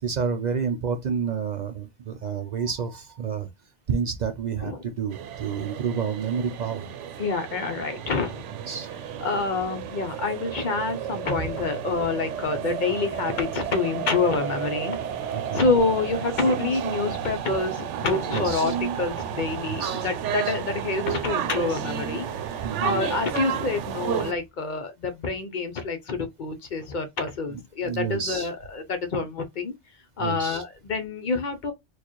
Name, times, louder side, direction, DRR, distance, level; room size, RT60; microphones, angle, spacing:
voice 1, 0.0-3.5 3.9-6.9 8.7-8.9 15.3-15.6 18.3-18.7 19.7-20.1 20.5-20.6 22.6-23.0 27.8-28.5 30.2-30.6, right 6 dB, 60° right, 0.4 m, -29 dB
sound 1, 5.1-24.3, right 9 dB, 85° right, 0.9 m, -32 dB
voice 2, 7.2-8.4 9.2-15.0 15.5-29.7 30.2-31.7, left 3 dB, 50° left, 0.7 m, -27 dB
4.3 x 2.4 x 2.9 m
omnidirectional pair, 1.2 m